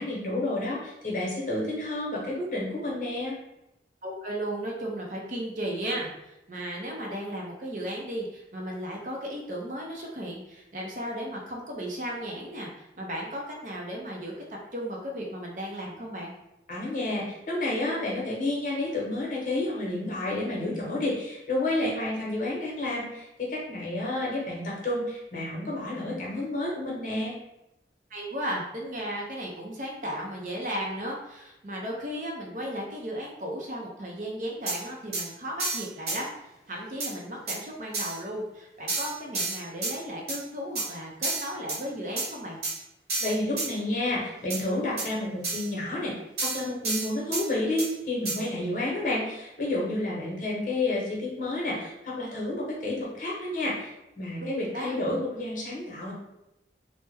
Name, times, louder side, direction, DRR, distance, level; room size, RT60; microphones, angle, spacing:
voice 1, 0.0-3.3 16.7-27.3 43.2-46.1 46.4-53.9 54.2-56.1, left 2 dB, 45° left, -4 dB, 0.9 m, -30 dB
voice 2, 4.0-16.3 24.0-24.1 28.1-36.3 36.7-42.6 54.4-54.5 54.7-54.9, equal, 45° right, -1 dB, 0.6 m, -35 dB
sound 1, 34.7-34.8 35.1-35.2 35.6-36.2 37.0-37.1 37.5-37.6 37.9-38.2 38.9-39.9 40.3-40.4 40.7-40.9 41.2-41.8 42.2-42.3 42.6-42.7 43.1-43.7 44.5-44.6 45.0-45.1 45.4-45.7 46.4-47.4 47.8-47.9 48.2-48.4, right 3 dB, 65° right, 1.0 m, -30 dB
3.2 x 2.1 x 3.3 m, 0.90 s
head